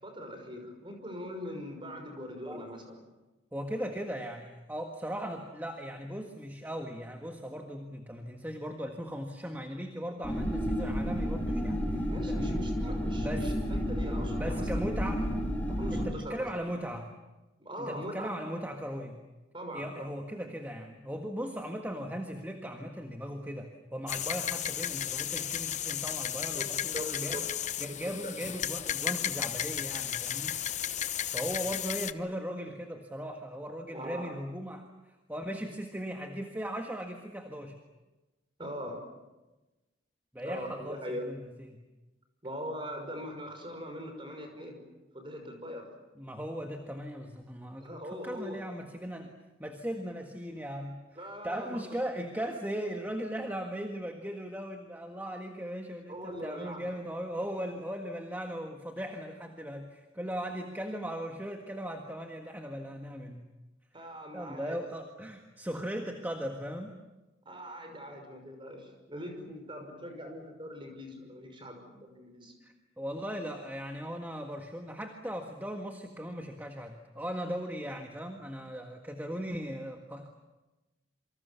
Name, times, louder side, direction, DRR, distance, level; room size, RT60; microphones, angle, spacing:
voice 1, 0.0-3.1 12.1-14.7 15.7-16.5 17.6-18.3 19.5-20.0 26.5-26.7 26.9-27.5 28.2-28.3 33.9-34.3 38.6-39.0 40.4-41.3 42.4-44.8 45.1-45.9 47.8-48.6 51.2-52.0 56.1-56.9 63.9-64.8 67.4-72.5, equal, 25° right, 4 dB, 5.8 m, -41 dB
voice 2, 3.5-12.7 13.2-13.5 14.4-15.3 15.9-17.1 17.8-19.2 19.7-27.4 27.8-30.6 31.3-37.7 40.3-41.4 41.7-41.8 46.2-63.5 64.3-67.0 72.6-80.3, equal, 10° right, 3 dB, 1.7 m, -38 dB
sound 1, 10.2-16.1, equal, 10° left, 4.0 m, -31 dB
sound 2, 24.1-32.1, left 10 dB, 40° left, 0.8 m, -34 dB
27.5 x 25.0 x 7.2 m, 1.1 s
head